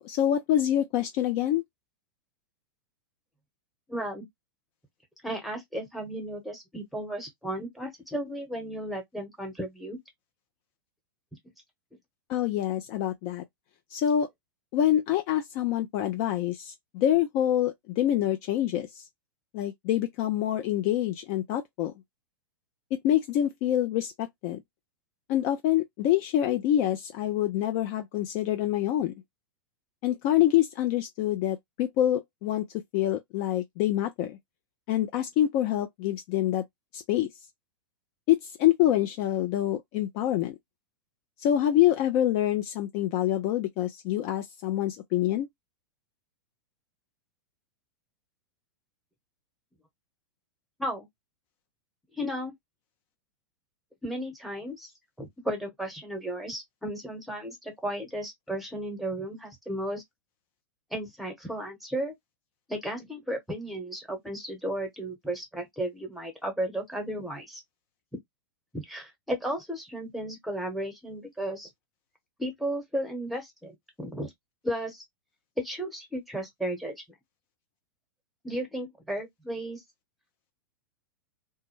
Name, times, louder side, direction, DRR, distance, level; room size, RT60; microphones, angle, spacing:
voice 1, 0.0-1.6 12.3-13.4 13.9-14.3 14.7-18.9 19.5-21.9 22.9-24.1 24.4-24.6 25.3-29.1 30.0-32.6 32.9-34.4 34.9-36.6 36.9-37.3 38.3-40.5 41.4-45.5, left 12 dB, 40° left, 0.4 m, -26 dB
voice 2, 3.9-4.3 5.2-10.0 50.8-51.1 52.1-52.5 54.0-54.9 55.2-60.0 60.9-62.1 62.7-67.6 68.7-71.7 72.4-74.3 74.6-75.0 75.6-77.0 78.4-79.8, right 1 dB, ahead, 1.0 m, -34 dB
2.2 x 2.1 x 3.0 m
figure-of-eight pair, 95°, 12 cm